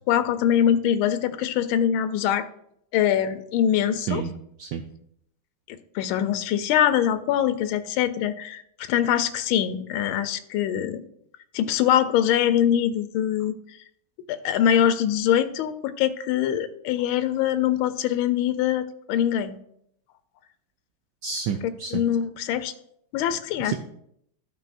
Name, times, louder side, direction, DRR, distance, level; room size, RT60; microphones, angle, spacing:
voice 1, 0.1-2.5 2.9-4.2 5.7-8.6 8.9-11.0 11.5-13.5 14.3-19.6 21.9-22.7 23.1-23.7, left 10 dB, 80° left, 11 dB, 1.4 m, -23 dB
voice 2, 4.0-4.3 4.6-4.8 21.2-22.0 23.6-23.7, right 7 dB, 75° right, 5 dB, 1.0 m, -29 dB
13.5 x 5.6 x 2.5 m, 0.73 s
omnidirectional pair, 2.4 m